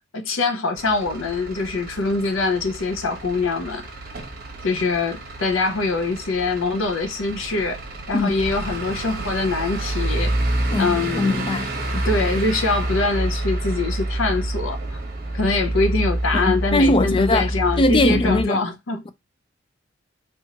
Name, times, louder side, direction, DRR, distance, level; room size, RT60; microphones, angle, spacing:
voice 1, 0.1-3.9 4.6-7.8 8.1-10.3 10.8-11.5 11.9-15.0 15.3-19.0, left 3 dB, 70° left, 0.6 m, -24 dB
Truck / Idling, 0.7-18.4, right 1 dB, 50° right, 1.0 m, -28 dB
voice 2, 10.7-11.7 16.3-17.5 17.8-18.6, left 2 dB, 25° left, 0.4 m, -20 dB
3.5 x 2.9 x 2.8 m
head